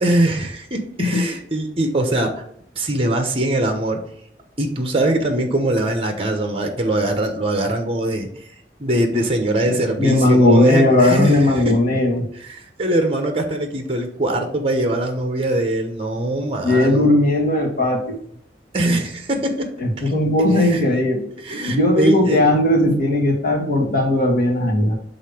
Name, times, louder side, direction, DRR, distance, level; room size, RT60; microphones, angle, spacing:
voice 1, 0.0-2.4 2.8-4.0 4.6-8.3 8.8-11.7 12.4-17.1 18.7-19.7 20.5-20.8 21.4-22.4, right 1 dB, 30° right, 5 dB, 0.9 m, -22 dB
voice 2, 9.6-12.3 16.6-18.2 19.8-21.2 21.7-24.9, left 1 dB, 50° left, -2 dB, 1.9 m, -17 dB
6.5 x 3.7 x 4.9 m, 0.68 s
head